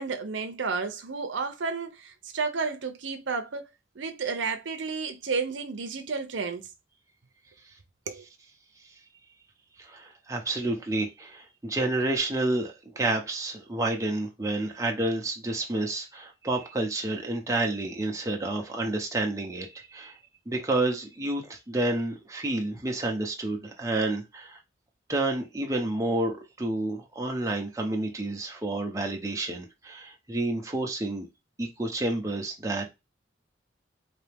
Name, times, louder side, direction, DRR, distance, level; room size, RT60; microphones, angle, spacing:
voice 1, 0.0-3.7 4.0-6.6 8.1-8.2, right 4 dB, 85° right, 0.7 m, -31 dB
voice 2, 9.8-20.2 20.5-24.6 25.1-31.3 31.6-32.9, right 2 dB, 15° right, 0.8 m, -29 dB
4.1 x 2.9 x 3.5 m
head